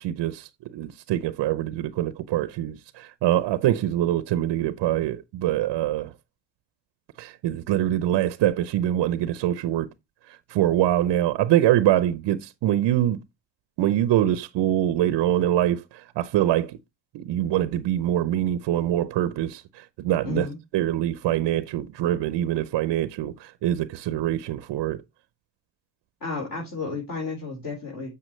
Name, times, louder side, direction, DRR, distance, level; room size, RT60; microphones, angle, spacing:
voice 1, 0.0-6.1 7.2-9.9 10.3-13.2 13.8-16.8 17.1-20.5 20.7-25.0, right 12 dB, 60° right, 0.7 m, -24 dB
voice 2, 20.2-20.6 26.2-28.1, left 4 dB, 45° left, 4.5 m, -32 dB
7.5 x 5.7 x 3.1 m
cardioid pair, 105°, 47 cm